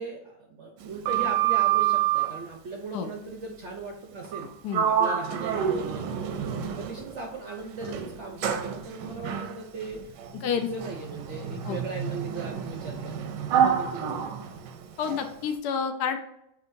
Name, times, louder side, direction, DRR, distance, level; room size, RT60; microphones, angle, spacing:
voice 1, 0.0-4.5 4.9-6.2 6.8-14.5, right 3 dB, 65° right, 2 dB, 0.7 m, -38 dB
Sliding door, 0.8-2.4 4.2-4.5 4.7-7.2 7.8-15.3, right 9 dB, 90° right, 1.2 m, -28 dB
voice 2, 15.0-16.2, left 7 dB, 75° left, 7 dB, 1.0 m, -29 dB
6.0 x 2.8 x 2.6 m, 0.81 s
omnidirectional pair, 1.8 m